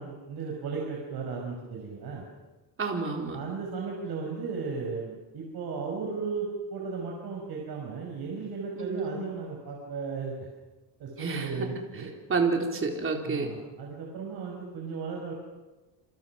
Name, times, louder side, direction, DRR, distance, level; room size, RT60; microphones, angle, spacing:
voice 1, 0.0-2.2 3.3-10.4 11.0-12.1 13.2-15.3, right 4 dB, 50° right, -1 dB, 5.7 m, -35 dB
voice 2, 2.8-3.4 8.8-9.1 11.2-11.4 12.3-13.5, right 4 dB, 25° right, 1 dB, 4.1 m, -29 dB
28.5 x 27.5 x 6.0 m, 1.2 s
cardioid pair, 160°, 47 cm